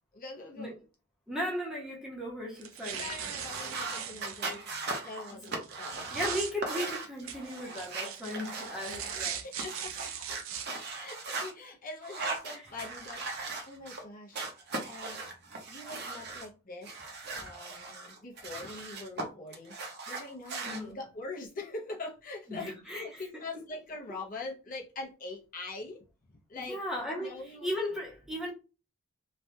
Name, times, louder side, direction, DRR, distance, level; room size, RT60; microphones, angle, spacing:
voice 1, 0.1-0.8 2.9-4.6 5.0-6.1 9.4-10.1 11.0-15.2 15.7-16.9 17.3-26.8 27.2-27.7, left 3 dB, 40° left, 0.6 m, -43 dB
voice 2, 1.3-3.1 4.4-4.6 6.1-9.4 12.5-12.6 20.7-21.0 22.5-23.2 26.5-28.5, left 1 dB, 5° right, 0.8 m, -36 dB
sound 1, 2.6-4.6 5.4-6.5 7.3-10.7, right 8 dB, 80° right, 0.5 m, -40 dB
sound 2, 3.4-11.5 12.0-14.0 14.3-16.5 16.8-19.2 19.5-20.8, right 3 dB, 50° right, 0.7 m, -39 dB
3.2 x 2.3 x 2.6 m
head